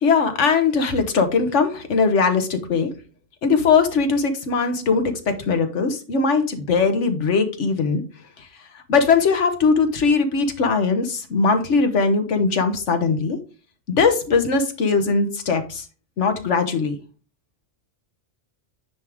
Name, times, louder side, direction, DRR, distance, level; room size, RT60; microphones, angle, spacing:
voice 1, 0.0-2.9 3.4-8.0 8.9-13.4 13.9-15.8 16.2-17.0, left 4 dB, 85° left, 7 dB, 1.4 m, -20 dB
9.5 x 3.6 x 3.5 m, 0.35 s
omnidirectional pair, 1.2 m